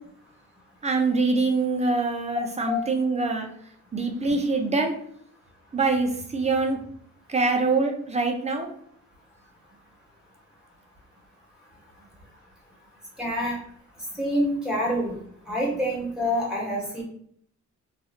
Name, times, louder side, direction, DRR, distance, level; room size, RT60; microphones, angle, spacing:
voice 1, 0.8-3.5 3.9-5.0 5.7-6.8 7.3-8.7, right 3 dB, 20° right, 3 dB, 0.5 m, -24 dB
voice 2, 13.2-13.6 14.2-15.1 15.5-17.0, equal, ahead, -5 dB, 1.5 m, -26 dB
3.0 x 2.4 x 2.8 m, 0.66 s
cardioid pair, 110°, 30 cm